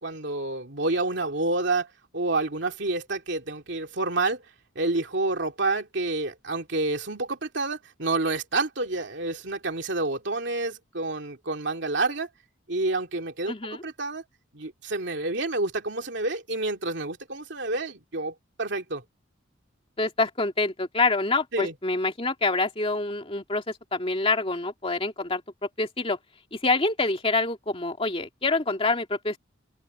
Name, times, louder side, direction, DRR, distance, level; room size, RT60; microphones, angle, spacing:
voice 1, 0.0-1.9 2.1-4.4 4.7-12.3 12.7-14.2 14.5-19.0 21.5-21.7, right 2 dB, 60° right, 2.8 m, -28 dB
voice 2, 13.5-13.8 20.0-26.2 26.5-29.4, left 3 dB, 30° left, 2.6 m, -26 dB
head